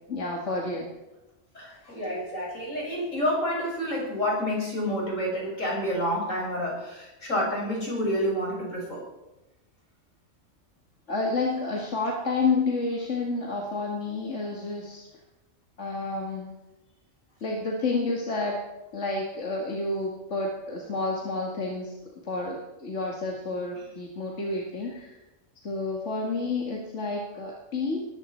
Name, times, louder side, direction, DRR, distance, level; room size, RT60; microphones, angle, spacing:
voice 1, 0.1-0.9 11.1-15.1 15.8-16.6 17.4-18.6 18.9-21.9 22.2-25.1 25.6-28.0, left 3 dB, 65° left, -1 dB, 2.3 m, -30 dB
voice 2, 1.5-9.0, equal, 90° left, -3 dB, 6.8 m, -29 dB
20.0 x 14.0 x 4.5 m, 1.0 s
omnidirectional pair, 1.3 m